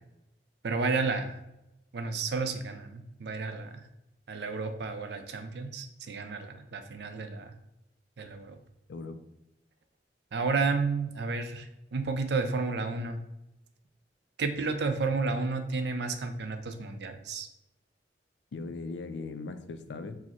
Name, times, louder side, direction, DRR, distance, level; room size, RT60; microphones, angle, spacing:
voice 1, 0.6-1.4 1.9-3.8 4.3-7.5 8.2-8.6 10.3-13.2 14.4-17.5, right 4 dB, 65° right, 8 dB, 0.5 m, -31 dB
voice 2, 8.9-9.2 18.5-20.2, left 3 dB, 90° left, 9 dB, 0.4 m, -39 dB
4.6 x 2.1 x 4.3 m, 0.88 s
head